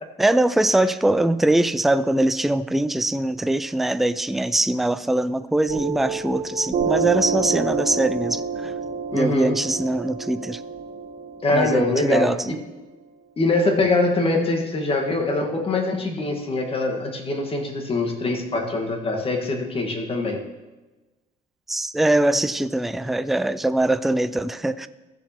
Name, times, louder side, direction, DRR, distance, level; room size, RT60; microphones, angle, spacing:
voice 1, 0.2-8.7 9.1-10.6 11.5-12.5 21.7-24.9, right 1 dB, ahead, 13 dB, 0.3 m, -22 dB
Piano, 5.7-12.8, right 5 dB, 70° right, 1.5 m, -28 dB
voice 2, 9.1-9.6 11.4-12.6 13.4-20.4, left 2 dB, 35° left, 2 dB, 1.7 m, -23 dB
15.0 x 7.1 x 3.0 m, 1.1 s
cardioid pair, 110°, 17 cm